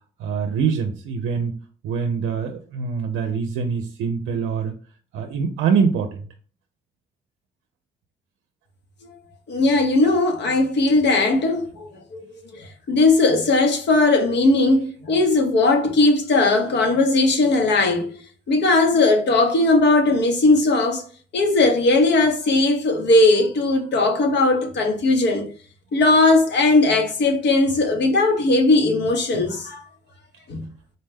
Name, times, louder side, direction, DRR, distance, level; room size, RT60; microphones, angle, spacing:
voice 1, 0.2-1.5 1.8-4.7 5.1-6.2, right 6 dB, 85° right, 0.5 m, -24 dB
voice 2, 9.5-12.0 12.5-18.1 18.5-21.0 21.3-25.5 25.9-29.9 30.5-30.6, left 2 dB, 60° left, 1.0 m, -18 dB
3.9 x 2.1 x 3.4 m
cardioid pair, 90°, 20 cm